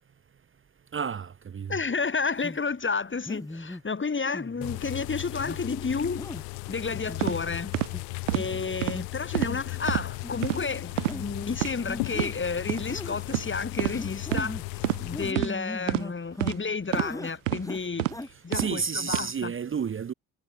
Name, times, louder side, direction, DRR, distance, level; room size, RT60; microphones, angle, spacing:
voice 1, 0.9-1.8 18.5-20.1, right 6 dB, 35° right, 1.0 m, -31 dB
voice 2, 1.7-6.4 6.7-7.8 8.3-19.5, left 4 dB, 30° left, 4.0 m, -31 dB
sound 1, 2.4-2.6 3.3-3.8 4.3-4.8 5.4-5.6 6.2-6.4 6.9-7.4 7.9-8.0 8.4-8.6 8.9-9.0 9.4-9.8 10.2-10.3 11.0-11.2 11.9-12.4 12.9-13.3 13.9-14.6 15.1-16.6 16.9-17.4 17.6-18.3 18.6-18.7, left 1 dB, 10° left, 2.0 m, -39 dB
sound 2, 4.6-15.3, left 35 dB, 70° left, 0.6 m, -36 dB
sound 3, 7.2-7.4 7.7-7.9 8.3-8.5 8.8-9.0 9.3-9.6 9.9-10.0 10.4-10.6 11.0-11.2 11.5-11.7 12.1-12.3 12.7-12.8 13.3-13.5 13.8-14.0 14.3-14.5 14.8-15.0 15.4-15.5 15.9-16.0 16.4-16.6 16.9-17.1 17.5-17.6 18.0-18.1 18.5-18.7 19.1-19.2, right 19 dB, 85° right, 0.6 m, -27 dB
figure-of-eight pair, 45°, 37 cm